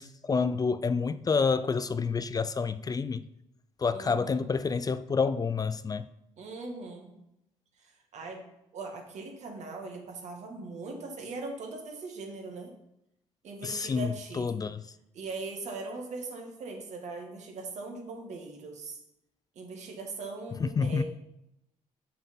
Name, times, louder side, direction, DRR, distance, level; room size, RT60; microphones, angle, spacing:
voice 1, 0.0-3.3 3.8-6.1 13.6-14.8 20.6-21.0, left 5 dB, 30° left, 0.4 m, -28 dB
voice 2, 3.9-4.5 6.4-7.1 7.8-8.4 8.7-12.7 13.4-14.6 15.1-19.0 19.6-21.0, right 3 dB, 65° right, 2.2 m, -40 dB
6.9 x 6.0 x 5.4 m
cardioid pair, 80°, 13 cm